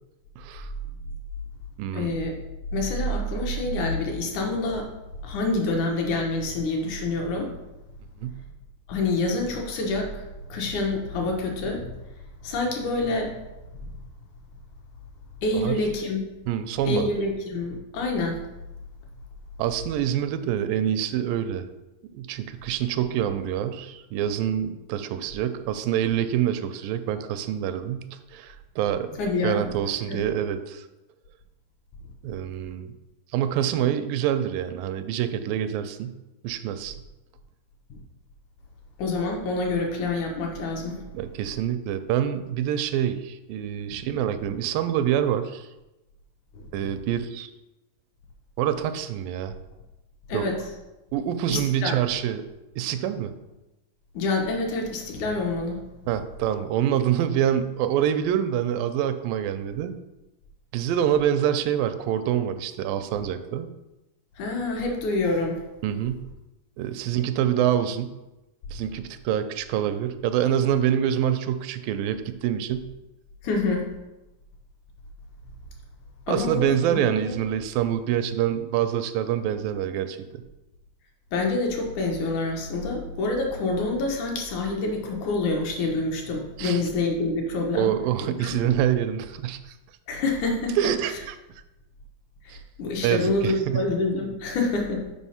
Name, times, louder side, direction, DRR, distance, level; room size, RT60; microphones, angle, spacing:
voice 1, 0.4-0.7 1.8-2.1 8.2-8.4 15.5-15.8 16.5-17.1 19.6-21.7 22.1-30.9 32.2-32.9 33.3-36.2 36.4-37.0 41.1-45.7 46.7-47.5 48.6-49.6 50.3-50.5 51.1-52.4 52.8-53.3 56.1-59.9 60.7-63.7 65.8-66.2 66.8-68.1 68.7-72.9 76.3-80.4 86.6-86.8 87.7-89.6 90.8-91.4 92.5-92.6 93.0-93.9, right 10 dB, 85° right, 10 dB, 2.2 m, -26 dB
voice 2, 1.9-2.3 2.7-4.9 5.2-7.5 8.9-11.9 12.4-13.3 13.7-13.8 15.4-16.2 16.9-18.4 29.2-29.6 30.1-30.2 37.9-38.0 39.0-41.0 43.9-44.0 46.6-46.9 50.3-50.5 51.5-52.0 54.1-55.8 64.4-65.6 73.4-73.8 76.3-77.0 77.3-77.4 81.3-87.9 88.4-88.6 90.1-90.8 92.4-95.1, left 2 dB, 70° left, 1 dB, 2.2 m, -27 dB
6.2 x 4.8 x 5.6 m, 1.0 s
omnidirectional pair, 4.0 m